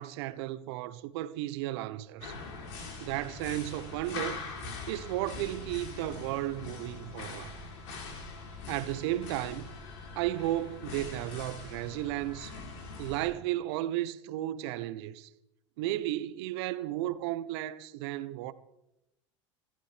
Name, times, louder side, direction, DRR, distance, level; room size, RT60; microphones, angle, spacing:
voice 1, 0.0-2.3 3.0-4.4 4.9-7.5 8.7-9.7 10.2-12.5 13.0-15.3 15.8-18.5, right 14 dB, 60° right, 1.1 m, -34 dB
sound 1, 2.2-13.3, left 4 dB, 65° left, 4.2 m, -42 dB
24.0 x 15.0 x 3.4 m
hypercardioid pair, 80°, 15 cm